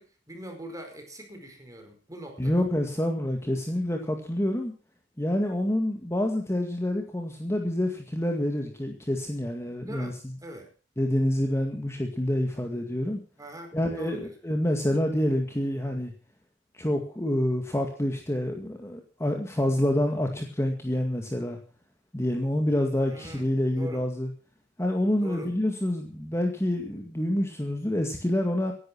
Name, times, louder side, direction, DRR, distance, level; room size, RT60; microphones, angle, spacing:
voice 1, 0.0-2.6 9.9-10.7 13.4-14.3 23.0-23.4 23.8-24.0 25.2-25.5, right 1 dB, 20° right, 4 dB, 4.8 m, -42 dB
voice 2, 2.4-4.7 5.2-10.1 11.0-13.2 13.7-16.1 16.8-21.6 22.1-24.3 24.8-28.7, left 1 dB, 15° left, 3 dB, 2.0 m, -27 dB
17.5 x 11.0 x 6.1 m, 0.39 s
head